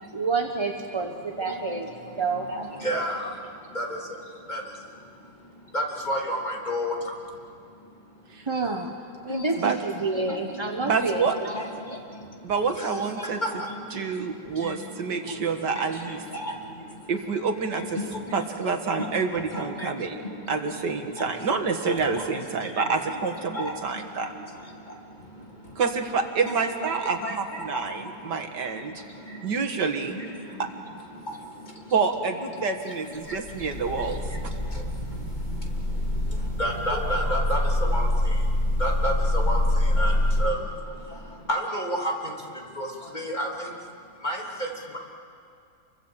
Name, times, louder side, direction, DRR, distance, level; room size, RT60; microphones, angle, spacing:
voice 1, 0.1-1.9 2.2-2.7 2.9-3.0 8.5-8.9 9.2-11.2, right 4 dB, 20° right, 2 dB, 0.9 m, -28 dB
voice 2, 0.9-8.5 9.2-9.7 10.1-17.1 17.4-17.5 17.7-18.6 19.0-25.8 26.4-32.0 32.5-43.9 44.1-45.0, equal, 25° left, -1 dB, 3.4 m, -35 dB
voice 3, 10.8-11.4 12.4-13.4 13.9-16.2 17.1-18.0 18.3-20.2 20.5-24.3 25.8-28.9 29.4-30.2 30.6-30.7 31.9-34.5, right 5 dB, 75° right, 6 dB, 2.2 m, -27 dB
sound 1, 33.1-40.5, left 1 dB, 85° left, 7.0 m, -25 dB
28.5 x 24.0 x 7.4 m, 2.4 s
omnidirectional pair, 1.9 m